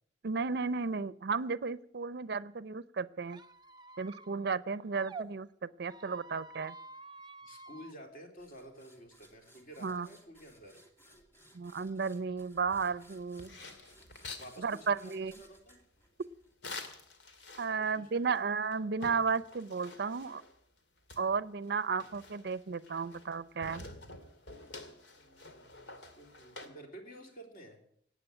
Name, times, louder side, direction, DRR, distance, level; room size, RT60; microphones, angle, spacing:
voice 1, 0.2-3.4 4.0-6.8 9.8-10.1 11.5-13.6 14.6-15.3 17.6-20.4 21.2-23.9, right 5 dB, 65° right, 17 dB, 0.5 m, -34 dB
Squeak, 3.3-5.3 5.8-7.9, right 3 dB, 25° right, 0.7 m, -49 dB
voice 2, 7.4-10.8 14.3-15.8 17.6-18.5 25.2-27.8, right 1 dB, 50° left, 3 dB, 3.7 m, -52 dB
sound 1, 8.4-16.9, equal, 15° left, 2.4 m, -61 dB
sound 2, 12.6-14.5 16.6-18.0 18.3-18.4 18.7-20.6 21.1-23.3 23.6-26.7, left 3 dB, 85° left, 2.3 m, -48 dB
18.5 x 8.4 x 8.9 m, 0.66 s
head